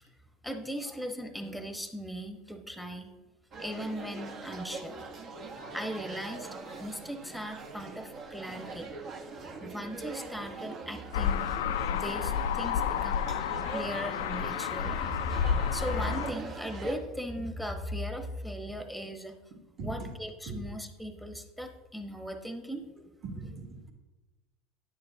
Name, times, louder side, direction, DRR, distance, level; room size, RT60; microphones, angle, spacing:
voice 1, 0.4-3.1 3.6-5.0 5.6-8.9 9.5-11.5 11.9-13.3 13.7-19.4 19.8-23.1, equal, ahead, 5 dB, 1.0 m, -38 dB
sound 1, 3.5-17.0, right 4 dB, 50° right, 1.0 m, -42 dB
sound 2, 11.1-16.3, left 8 dB, 85° left, 0.3 m, -30 dB
voice 2, 23.2-23.9, right 4 dB, 35° right, 1 dB, 1.5 m, -40 dB
10.0 x 6.8 x 2.7 m, 1.1 s
hypercardioid pair, 95°, 0 cm